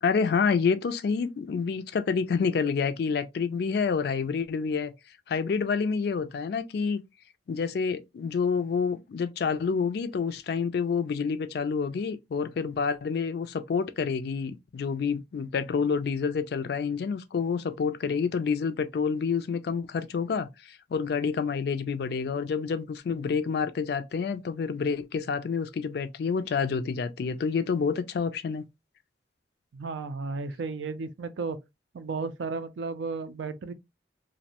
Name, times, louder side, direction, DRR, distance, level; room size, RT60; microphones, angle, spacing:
voice 1, 0.0-4.9 5.3-7.0 7.5-28.7, left 5 dB, 55° left, 0.3 m, -28 dB
voice 2, 29.7-31.6 31.9-33.7, right 4 dB, 80° right, 0.4 m, -34 dB
2.5 x 2.1 x 2.7 m
head